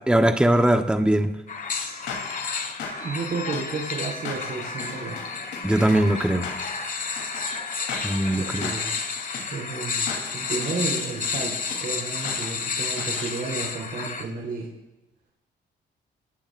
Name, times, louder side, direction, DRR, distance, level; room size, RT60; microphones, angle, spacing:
voice 1, 0.1-1.3 5.6-6.5 8.0-8.7, right 1 dB, 5° right, 6 dB, 1.1 m, -20 dB
sound 1, 1.5-14.2, left 5 dB, 45° left, 1.5 m, -31 dB
sound 2, 1.7-13.3, left 5 dB, 90° left, 3.4 m, -38 dB
voice 2, 3.0-5.3 8.4-9.0 9.5-11.5 11.8-14.7, right 4 dB, 55° right, -3 dB, 4.1 m, -32 dB
27.0 x 19.0 x 2.6 m, 0.96 s
cardioid pair, 85°, 19 cm